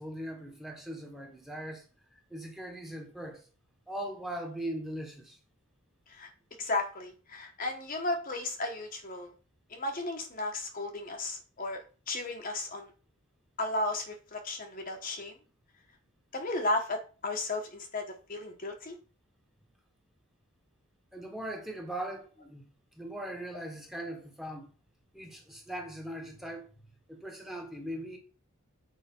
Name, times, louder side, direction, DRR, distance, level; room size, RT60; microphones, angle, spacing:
voice 1, 0.0-1.8 2.1-3.4 3.9-5.4 21.1-22.7 23.0-24.7 25.1-26.8 27.1-28.2, right 1 dB, ahead, 1.2 m, -40 dB
voice 2, 6.6-9.3 9.7-12.9 13.6-15.3 16.3-18.0 18.3-19.0, left 2 dB, 40° left, 1.1 m, -34 dB
7.4 x 4.9 x 4.4 m
head